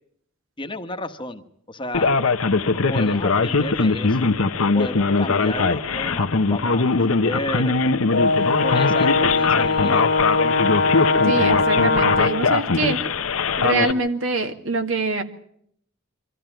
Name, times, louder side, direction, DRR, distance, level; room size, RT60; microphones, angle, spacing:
voice 1, 0.6-2.1 2.9-4.3 4.7-7.8 8.6-10.1, left 1 dB, 25° left, 7 dB, 1.2 m, -32 dB
Male speech man speaking, 1.9-13.9, left 4 dB, 85° left, 1.0 m, -21 dB
Brass instrument, 8.1-12.5, left 3 dB, 55° left, 1.4 m, -21 dB
voice 2, 11.2-13.0 13.6-15.2, right 3 dB, 70° right, 6 dB, 2.1 m, -24 dB
25.0 x 14.0 x 9.1 m, 0.69 s
head